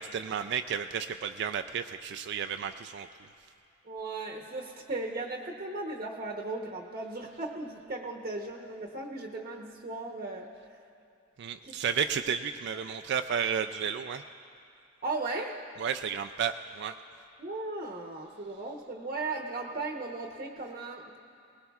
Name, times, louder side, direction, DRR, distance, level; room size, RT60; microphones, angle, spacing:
voice 1, 0.0-3.1 11.4-14.2 15.8-17.0, right 7 dB, 55° right, 7 dB, 0.3 m, -32 dB
voice 2, 3.8-10.5 11.6-11.7 15.0-15.5 17.4-21.2, right 2 dB, 40° right, 0 dB, 0.8 m, -36 dB
20.0 x 20.0 x 2.3 m, 2.5 s
head